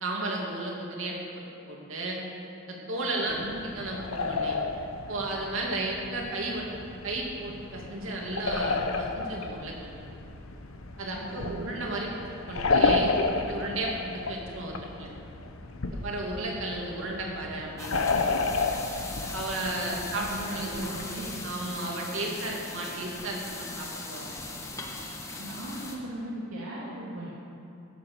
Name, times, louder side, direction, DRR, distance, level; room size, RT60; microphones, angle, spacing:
voice 1, 0.0-2.2 2.7-3.4 3.7-4.5 5.1-9.9 11.0-15.1 15.9-18.2 19.3-20.7 21.4-24.3, right 2 dB, 70° right, -1 dB, 2.5 m, -34 dB
voice 2, 3.2-3.6 11.2-11.8 20.1-21.5 25.4-27.2, right 1 dB, 90° right, -7 dB, 2.5 m, -38 dB
sound 1, 3.3-21.3, left 3 dB, 80° left, 0.9 m, -32 dB
sound 2, 17.8-26.0, left 2 dB, 15° left, 1.4 m, -39 dB
16.5 x 7.3 x 7.0 m, 2.8 s
head